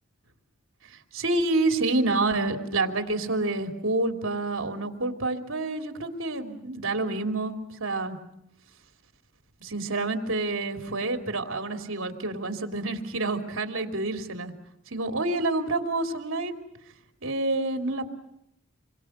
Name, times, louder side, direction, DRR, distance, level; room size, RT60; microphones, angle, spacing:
voice 1, 1.1-8.2 9.6-14.5 14.9-16.6 17.2-18.1, right 2 dB, 75° right, 5 dB, 3.1 m, -28 dB
28.0 x 23.5 x 8.0 m, 0.79 s
head